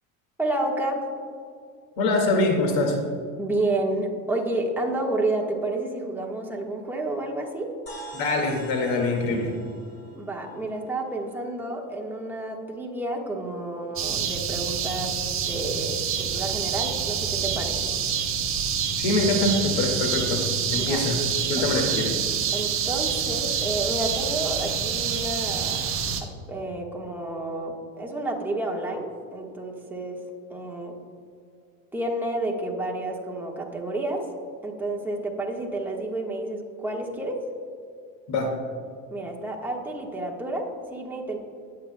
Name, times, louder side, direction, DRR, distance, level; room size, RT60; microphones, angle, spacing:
voice 1, 0.4-1.1 3.4-7.7 10.2-15.2 15.4-17.9 20.7-21.0 21.6-21.7 22.5-25.8 26.2-30.2 30.5-30.9 31.9-34.2 34.6-37.4 39.1-41.4, right 2 dB, 5° right, -2 dB, 1.3 m, -30 dB
voice 2, 2.0-3.0 8.1-9.5 19.0-20.4 20.7-21.2 21.5-22.1 38.3-38.5, left 2 dB, 75° left, 2 dB, 2.1 m, -24 dB
sound 1, 7.9-11.6, right 2 dB, 40° left, 2.7 m, -45 dB
sound 2, 14.0-26.2, right 7 dB, 35° right, 1.1 m, -27 dB
20.5 x 8.6 x 2.2 m, 2.3 s
cardioid pair, 145°, 36 cm